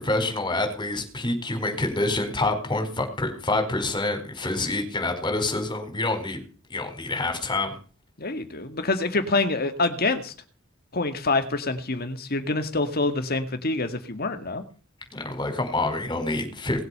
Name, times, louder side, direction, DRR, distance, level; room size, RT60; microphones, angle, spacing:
voice 1, 0.0-6.4 6.7-7.7 15.1-16.8, left 2 dB, 25° left, 5 dB, 4.6 m, -27 dB
voice 2, 8.2-10.3 10.9-14.6, left 3 dB, 50° left, 9 dB, 2.2 m, -26 dB
19.0 x 8.1 x 6.8 m, 0.38 s
head